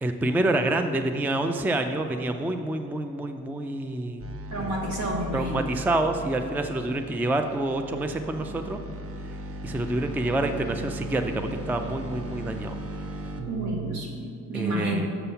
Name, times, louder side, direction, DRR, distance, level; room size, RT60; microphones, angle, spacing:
voice 1, 0.0-4.2 4.6-4.7 5.3-8.8 9.6-12.8 14.5-15.1, right 2 dB, 5° right, 7 dB, 0.3 m, -27 dB
sound 1, 4.2-14.0, right 1 dB, 50° right, 0.9 m, -37 dB
voice 2, 4.5-5.6 8.4-8.5 13.5-15.1, right 1 dB, 65° right, -2 dB, 2.0 m, -30 dB
6.9 x 5.4 x 5.6 m, 2.6 s
cardioid pair, 90°, 30 cm